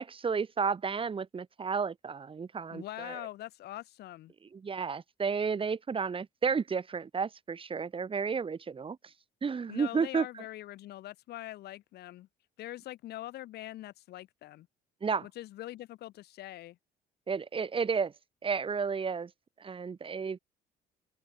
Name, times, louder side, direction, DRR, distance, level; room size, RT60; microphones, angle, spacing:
voice 1, 0.0-3.2 4.5-9.1 9.4-10.4 15.0-15.3 17.3-18.1 18.4-19.3 19.6-20.4, right 5 dB, 30° right, 6.3 m, -32 dB
voice 2, 2.7-4.3 9.7-12.3 12.6-14.7 15.2-16.8, left 15 dB, 75° left, 6.9 m, -43 dB
cardioid pair, 110°, 17 cm